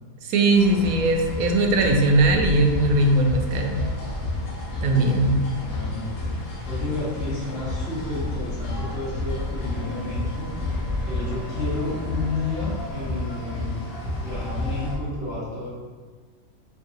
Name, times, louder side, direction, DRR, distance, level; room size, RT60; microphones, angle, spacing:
voice 1, 0.2-3.8 4.8-5.4, right 2 dB, 85° right, 2 dB, 1.1 m, -20 dB
sound 1, 0.5-14.9, left 2 dB, 85° left, 1.3 m, -30 dB
voice 2, 4.9-6.1 6.7-10.5 11.0-13.8 14.2-15.7, left 3 dB, 45° left, -9 dB, 1.5 m, -31 dB
4.5 x 3.1 x 2.7 m, 1.4 s
omnidirectional pair, 1.5 m